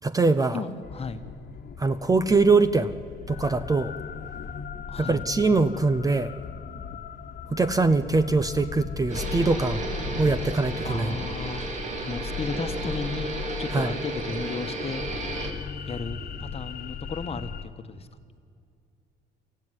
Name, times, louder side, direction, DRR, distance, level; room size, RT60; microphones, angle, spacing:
voice 1, 0.0-0.6 1.8-2.9 3.3-3.9 5.0-6.3 7.5-9.9 10.2-11.1 13.7-13.9, right 3 dB, 20° right, 12 dB, 0.8 m, -22 dB
voice 2, 0.5-1.2 4.9-5.2 10.8-13.3 13.6-15.1 15.9-18.1, left 4 dB, 30° left, 9 dB, 1.4 m, -34 dB
sound 1, 0.8-17.6, left 7 dB, 45° left, 1.5 m, -38 dB
sound 2, 9.1-15.5, right 2 dB, 35° right, 3.7 m, -33 dB
24.0 x 15.5 x 9.8 m, 2.3 s
cardioid pair, 115°, 20 cm